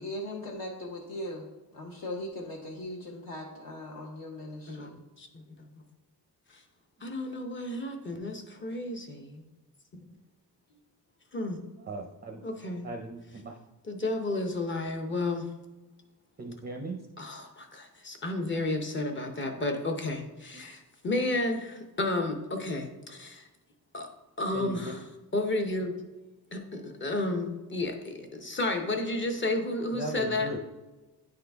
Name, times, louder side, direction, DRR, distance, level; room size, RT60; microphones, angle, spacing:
voice 1, 0.0-1.5 1.7-4.9, left 1 dB, 60° left, -1 dB, 0.9 m, -39 dB
voice 2, 7.0-9.4 11.3-11.6 12.4-12.9 13.9-15.5 17.2-23.5 23.9-24.1 24.4-25.0 25.3-25.9 26.5-30.5, left 2 dB, 30° left, 4 dB, 0.7 m, -32 dB
voice 3, 11.8-12.4 12.8-13.6 16.4-17.0 24.5-24.9 29.9-30.6, right 2 dB, 25° right, 2 dB, 0.4 m, -38 dB
9.3 x 3.8 x 3.4 m, 1.1 s
wide cardioid pair, 160°, 40 cm